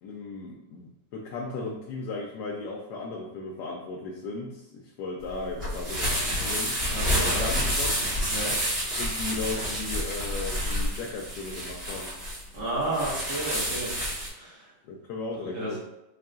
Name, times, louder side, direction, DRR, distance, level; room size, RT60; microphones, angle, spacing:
voice 1, 0.0-6.8 7.1-8.0 9.0-12.1 14.8-15.8, left 3 dB, 75° left, 0 dB, 1.1 m, -36 dB
sound 1, 5.2-14.3, equal, 35° right, 1.7 m, -29 dB
voice 2, 6.9-7.5 8.3-8.5 12.5-13.9 14.3-14.7 15.4-15.8, right 2 dB, 75° right, -7 dB, 2.1 m, -32 dB
4.5 x 3.3 x 2.4 m, 0.93 s
omnidirectional pair, 1.8 m